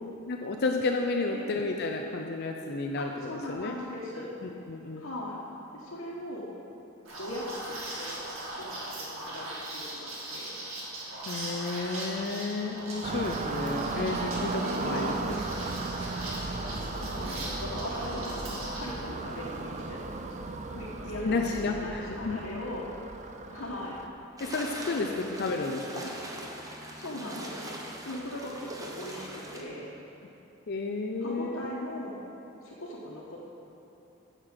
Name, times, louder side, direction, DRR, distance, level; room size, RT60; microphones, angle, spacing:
voice 1, 0.0-3.7 4.4-5.1 11.3-15.4 21.2-22.4 24.4-26.1 30.7-31.7, left 3 dB, 55° left, 2 dB, 0.5 m, -32 dB
voice 2, 3.0-4.3 5.0-5.4 5.7-6.5 7.2-8.2 8.6-10.6 14.8-15.2 17.0-21.3 21.6-22.8 23.1-23.2 23.5-24.0 24.9-25.8 27.0-27.7 28.0-29.9 31.2-32.2 32.6-33.4, left 1 dB, 90° left, -6 dB, 1.4 m, -40 dB
Liquid, 7.1-18.9, right 1 dB, 75° right, 2.2 m, -39 dB
sound 1, 13.0-24.1, right 3 dB, 35° right, 0.5 m, -36 dB
sound 2, 24.4-29.6, right 1 dB, 15° right, 1.0 m, -41 dB
9.5 x 6.6 x 6.4 m, 3.0 s
head